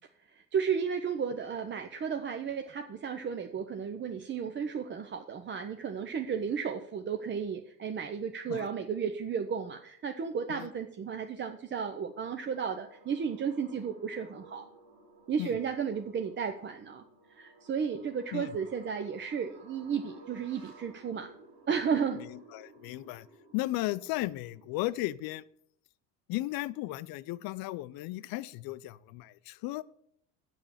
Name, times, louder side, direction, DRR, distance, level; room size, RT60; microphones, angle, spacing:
voice 1, 0.3-14.6 15.3-17.0 17.3-21.3 21.7-22.2, right 6 dB, 25° right, 0.6 m, -33 dB
sound 1, 11.6-24.7, right 2 dB, 70° right, 2.6 m, -56 dB
voice 2, 22.5-23.3 23.5-25.4 26.3-29.8, left 17 dB, 50° left, 0.5 m, -35 dB
6.7 x 6.2 x 7.2 m
hypercardioid pair, 75°, 48 cm